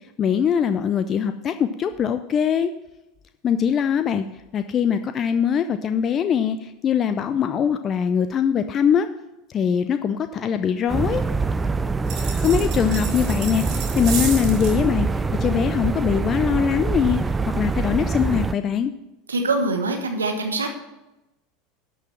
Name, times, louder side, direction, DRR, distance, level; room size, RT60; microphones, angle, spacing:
voice 1, 0.2-2.7 3.4-4.2 4.5-9.1 9.5-11.2 12.4-18.9, left 8 dB, 35° left, 10 dB, 0.5 m, -22 dB
sound 1, 10.9-18.5, right 4 dB, 15° right, 0.5 m, -24 dB
sound 2, 12.1-14.8, right 6 dB, 45° right, 3.4 m, -32 dB
voice 2, 19.3-20.7, right 2 dB, 85° right, 5 dB, 1.2 m, -24 dB
11.5 x 6.2 x 6.0 m, 0.95 s
figure-of-eight pair, 80°, 0 cm